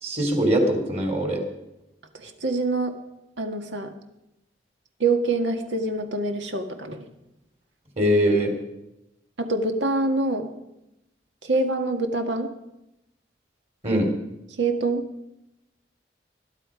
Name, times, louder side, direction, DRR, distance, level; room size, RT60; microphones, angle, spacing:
voice 1, 0.0-1.4 8.0-8.5 13.8-14.1, equal, 35° right, 3 dB, 3.4 m, -22 dB
voice 2, 2.1-2.9 3.4-3.9 5.0-7.1 9.4-10.5 11.4-12.5 14.6-15.0, right 2 dB, 85° right, 5 dB, 1.9 m, -25 dB
21.5 x 11.5 x 5.2 m, 0.90 s
head